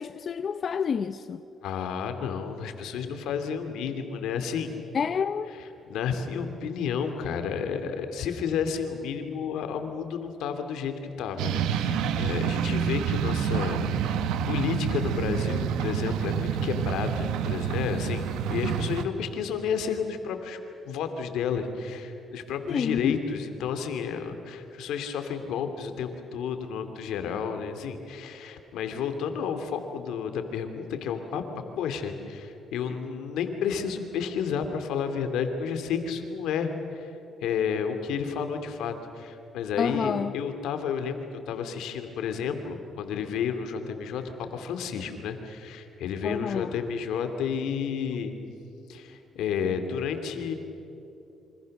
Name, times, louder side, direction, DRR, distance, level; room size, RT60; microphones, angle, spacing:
voice 1, 0.0-1.4 4.9-5.5 22.7-23.2 39.8-40.3 46.2-46.7, left 6 dB, 50° left, 10 dB, 0.8 m, -28 dB
voice 2, 1.6-4.8 5.9-20.6 20.8-31.4 31.8-37.1 37.4-48.3 48.9-50.5, left 7 dB, 85° left, 7 dB, 2.8 m, -31 dB
sound 1, 11.4-19.0, right 8 dB, 90° right, 1.2 m, -28 dB
28.0 x 26.0 x 6.7 m, 2.9 s
cardioid pair, 90°, 0 cm